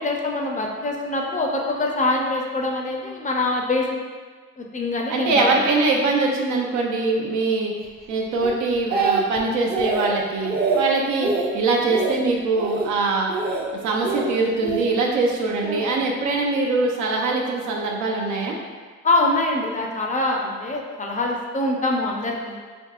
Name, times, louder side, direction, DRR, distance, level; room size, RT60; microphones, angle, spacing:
voice 1, 0.0-3.9 4.6-5.5 19.0-22.6, left 2 dB, 25° left, 0 dB, 0.4 m, -24 dB
voice 2, 5.1-7.7 8.1-13.3 13.8-18.5, right 3 dB, 75° right, 0 dB, 0.6 m, -23 dB
Speech, 8.4-9.4 9.7-10.1 10.4-10.8 11.2-11.5 11.9-12.2 12.6-12.9 13.3-13.6 14.0-14.9 15.6-15.9, right 4 dB, 35° right, 0.5 m, -24 dB
3.5 x 2.7 x 2.4 m, 1.5 s
cardioid pair, 90°, 30 cm